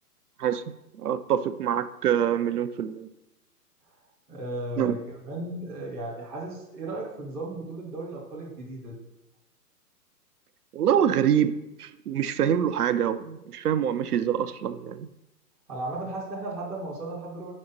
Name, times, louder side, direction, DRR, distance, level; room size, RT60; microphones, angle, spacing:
voice 1, 1.0-3.1 4.8-5.0 10.7-15.1, right 9 dB, 70° right, 12 dB, 0.5 m, -25 dB
voice 2, 4.3-9.0 15.7-17.5, right 2 dB, 5° right, -6 dB, 0.4 m, -35 dB
5.0 x 4.2 x 5.1 m, 0.89 s
figure-of-eight pair, 120°, 47 cm